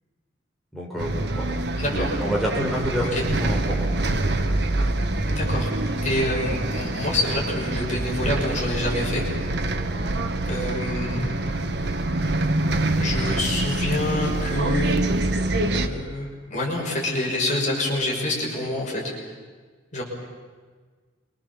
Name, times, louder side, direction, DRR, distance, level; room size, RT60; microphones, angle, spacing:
voice 1, 0.7-1.5 1.9-3.9, equal, ahead, -4 dB, 5.1 m, -28 dB
Bus, 1.0-15.9, right 2 dB, 60° right, 1.6 m, -25 dB
voice 2, 5.3-5.7 6.0-9.2 10.4-11.3 13.0-15.0 15.7-19.1 19.9-20.0, left 1 dB, 40° left, -1 dB, 6.3 m, -27 dB
27.5 x 24.0 x 7.2 m, 1.5 s
head